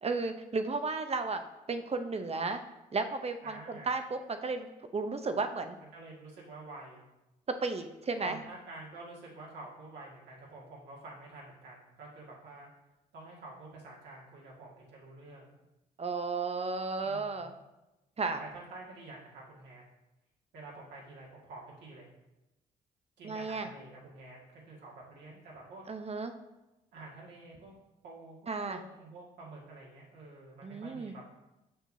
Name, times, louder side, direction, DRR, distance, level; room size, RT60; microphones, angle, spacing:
voice 1, 0.0-1.4 1.7-2.6 2.9-5.8 7.6-8.4 16.0-17.5 18.2-18.4 23.2-23.7 25.9-26.3 28.5-28.8 30.6-31.1, right 4 dB, 35° right, 8 dB, 0.7 m, -34 dB
voice 2, 3.4-3.9 5.9-7.1 8.2-12.7 13.1-15.6 17.0-17.6 18.4-19.8 20.5-22.1 23.2-25.8 26.9-27.7 28.0-31.3, right 2 dB, 75° right, -4 dB, 1.9 m, -49 dB
6.5 x 6.0 x 2.7 m, 0.97 s
hypercardioid pair, 45°, 18 cm